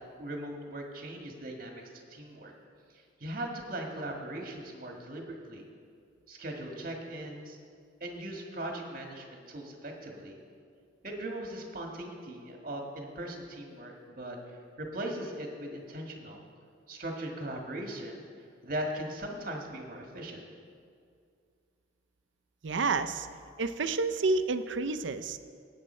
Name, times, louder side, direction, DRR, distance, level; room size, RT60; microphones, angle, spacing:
voice 1, 0.2-1.8 2.1-2.5 3.2-5.7 6.3-7.6 8.0-10.4 11.0-16.4 16.9-18.2 18.6-20.4, right 1 dB, 45° right, 1 dB, 1.7 m, -39 dB
voice 2, 22.6-23.3 23.6-25.4, right 3 dB, 75° right, 11 dB, 0.6 m, -29 dB
17.5 x 8.7 x 4.4 m, 2.3 s
head